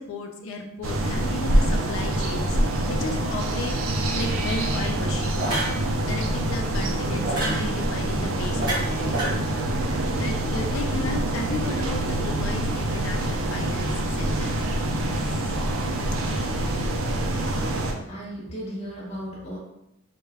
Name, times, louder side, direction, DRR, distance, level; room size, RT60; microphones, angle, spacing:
voice 1, 0.0-9.3 10.2-14.5, left 3 dB, 85° left, 2 dB, 0.4 m, -35 dB
sound 1, 0.8-17.9, right 1 dB, 80° right, 0.4 m, -25 dB
sound 2, 4.3-4.6 5.4-5.8 7.2-7.6 8.6-9.3, right 1 dB, 25° right, 1.1 m, -28 dB
voice 2, 14.9-15.6 18.0-19.6, equal, 30° left, -5 dB, 0.6 m, -36 dB
2.2 x 2.1 x 3.3 m, 0.84 s
head